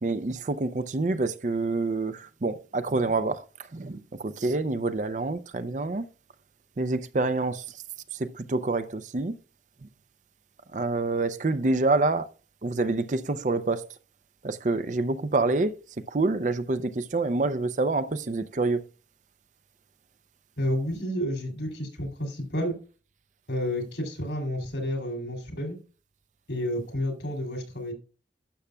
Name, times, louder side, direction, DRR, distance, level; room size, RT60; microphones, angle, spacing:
voice 1, 0.0-3.4 3.7-6.0 6.8-7.6 8.1-9.3 10.7-12.3 12.6-13.9 14.4-15.8 16.1-18.8, right 3 dB, 40° right, 0.5 m, -27 dB
voice 2, 20.6-22.8 23.5-25.8 26.5-27.9, equal, 80° left, 2.9 m, -30 dB
11.5 x 7.0 x 2.3 m
head